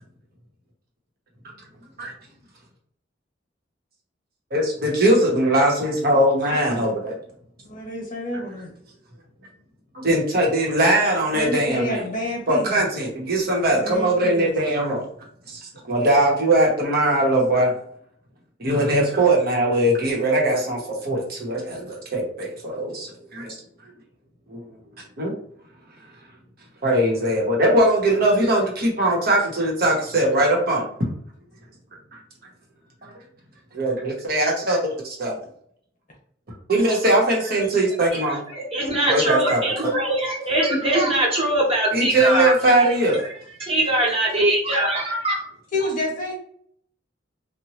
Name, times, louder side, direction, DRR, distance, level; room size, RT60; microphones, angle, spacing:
voice 1, 4.5-7.1 9.9-12.0 12.5-15.1 15.5-17.7 18.6-23.5 24.5-24.6 25.2-25.3 26.8-30.9 33.0-33.1 33.7-35.3 36.7-38.4 39.1-39.6 41.9-43.3, right 1 dB, 55° right, -2 dB, 0.9 m, -20 dB
voice 2, 6.1-6.8 7.7-8.7 11.3-12.8 13.7-14.5 45.7-46.3, left 1 dB, 45° left, -1 dB, 0.9 m, -29 dB
voice 3, 38.1-42.5 42.8-42.9 43.6-45.5, right 1 dB, 30° right, -3 dB, 1.0 m, -22 dB
2.9 x 2.1 x 2.9 m, 0.63 s
head